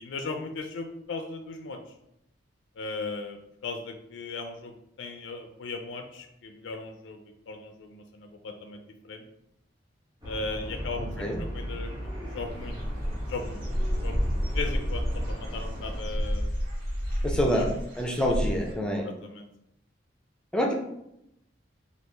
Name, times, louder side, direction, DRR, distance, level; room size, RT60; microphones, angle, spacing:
voice 1, 0.0-1.8 2.8-4.7 5.0-9.2 10.2-11.9 12.3-12.8 13.3-13.6 14.0-14.2 14.5-16.5 17.3-17.7 19.0-19.5, left 3 dB, 80° left, 5 dB, 0.4 m, -37 dB
sound 1, 10.2-16.0, equal, 20° right, 1.2 m, -37 dB
Dog / Bird, 12.4-18.7, equal, 55° right, 0.8 m, -30 dB
voice 2, 17.2-17.7 18.0-19.1 20.5-20.7, equal, 5° left, 1 dB, 0.4 m, -26 dB
2.9 x 2.3 x 3.3 m, 0.80 s
head